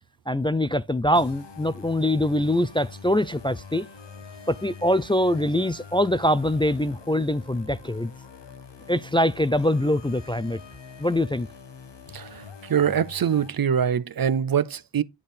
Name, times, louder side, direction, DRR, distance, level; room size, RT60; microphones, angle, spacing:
voice 1, 0.3-3.9 4.5-8.1 8.9-10.6 11.0-11.5, left 1 dB, 15° left, 0.3 m, -23 dB
sound 1, 1.2-13.5, left 5 dB, 75° left, 1.1 m, -44 dB
voice 2, 12.1-15.0, right 8 dB, 55° right, 0.5 m, -24 dB
9.7 x 3.4 x 4.2 m
wide cardioid pair, 60°, 43 cm